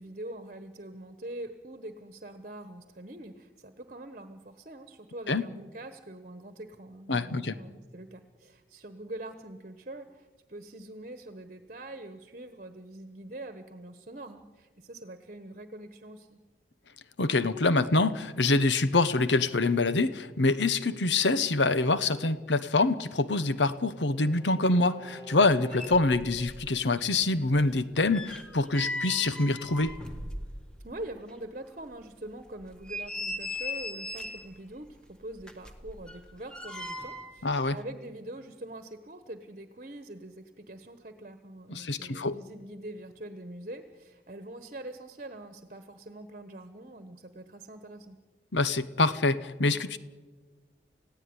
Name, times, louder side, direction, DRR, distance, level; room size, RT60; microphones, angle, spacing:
voice 1, 0.0-16.4 30.8-48.2, right 1 dB, 45° right, 8 dB, 1.2 m, -44 dB
voice 2, 7.1-7.6 17.2-29.9 37.4-37.8 41.7-42.4 48.5-50.0, left 3 dB, 90° left, 13 dB, 1.0 m, -25 dB
Bowed string instrument, 22.9-26.5, right 1 dB, 25° left, 1.7 m, -49 dB
sound 1, 25.7-26.7 27.0-30.9 31.3-31.4 31.9-32.0 32.6-34.5 35.4-37.4 37.7-37.8, left 2 dB, 5° left, 1.8 m, -38 dB
29.0 x 16.5 x 9.7 m, 1.4 s
head